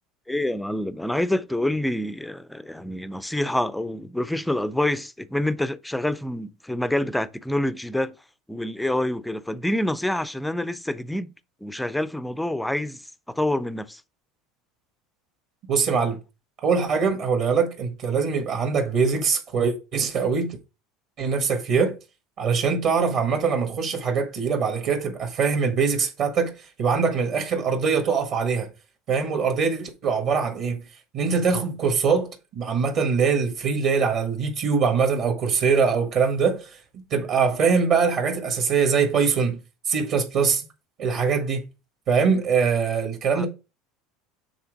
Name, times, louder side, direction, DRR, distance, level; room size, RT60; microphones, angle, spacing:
voice 1, 0.3-8.2 8.5-11.3 11.6-13.0 13.3-14.0 43.3-43.4, left 1 dB, 5° left, 0.4 m, -27 dB
voice 2, 15.7-16.2 16.6-20.6 21.2-22.0 22.4-26.5 26.8-28.7 29.1-30.8 31.1-39.6 39.9-40.6 41.0-41.6 42.1-43.5, right 5 dB, 45° right, 1.5 m, -23 dB
7.1 x 3.4 x 5.1 m
supercardioid pair, 145°, 0 cm